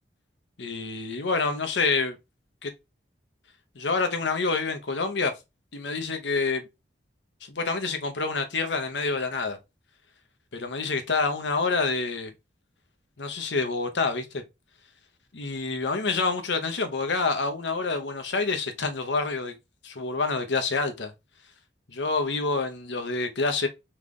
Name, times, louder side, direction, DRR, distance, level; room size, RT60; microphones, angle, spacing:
voice 1, 0.6-2.2 2.6-2.7 3.7-5.3 5.7-6.7 7.5-9.6 10.5-12.3 13.2-14.4 15.3-19.6 19.8-21.1 21.9-23.7, left 4 dB, 75° left, 0.9 m, -27 dB
3.7 x 3.2 x 3.6 m
head